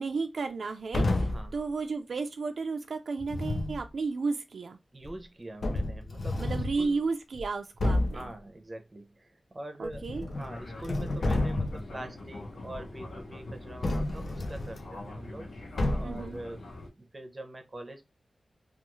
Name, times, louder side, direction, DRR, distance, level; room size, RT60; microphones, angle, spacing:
voice 1, 0.0-1.3 1.5-4.8 6.4-8.3 9.8-10.3 16.0-16.4, right 4 dB, 80° right, 0.3 m, -33 dB
sound 1, 0.9-1.5 3.2-3.8 5.0-5.1 5.6-6.8 7.3-7.4 7.8-8.3 9.8-10.5 10.8-11.9 13.8-14.8 15.8-16.3, left 2 dB, 55° left, 0.4 m, -30 dB
voice 2, 4.9-7.0 8.1-15.6 16.0-16.6 17.0-18.0, right 1 dB, 25° right, 0.5 m, -44 dB
Fixed-wing aircraft airplane, 10.3-16.9, left 2 dB, 80° left, 0.8 m, -43 dB
2.3 x 2.3 x 3.0 m
wide cardioid pair, 120°, 0 cm